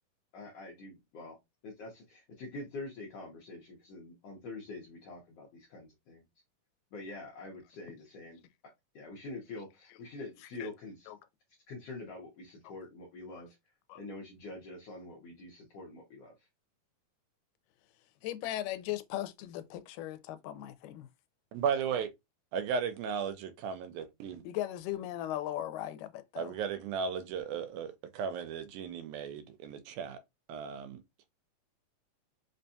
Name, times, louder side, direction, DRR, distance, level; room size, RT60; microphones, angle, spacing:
voice 1, 0.3-1.4 1.6-6.2 6.9-8.4 8.9-11.1 11.7-13.6 13.9-16.3, left 2 dB, 70° left, 1.5 m, -45 dB
voice 2, 18.2-21.1 24.4-26.6, left 13 dB, 85° left, 2.1 m, -38 dB
voice 3, 21.5-22.1 22.5-24.4 26.4-30.2 30.5-31.0, right 6 dB, 80° right, 1.9 m, -35 dB
5.2 x 2.2 x 2.6 m
omnidirectional pair, 3.7 m